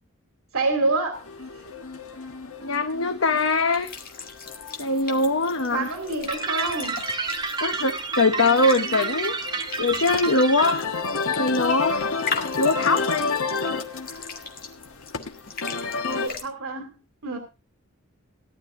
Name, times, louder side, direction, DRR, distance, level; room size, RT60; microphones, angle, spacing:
voice 1, 0.5-1.2 5.7-7.0 16.1-17.0 17.2-17.4, right 3 dB, 75° right, 2.7 m, -27 dB
sound 1, 1.1-16.3, left 4 dB, 85° left, 1.4 m, -32 dB
voice 2, 2.6-3.9 4.8-5.9 7.6-9.3 9.8-10.9 11.4-12.0 12.6-13.3, left 3 dB, 65° left, 1.0 m, -22 dB
sound 2, 3.7-16.4, left 5 dB, 45° left, 2.1 m, -39 dB
sound 3, 6.3-10.7, right 4 dB, 20° right, 1.1 m, -29 dB
18.5 x 11.5 x 2.6 m
head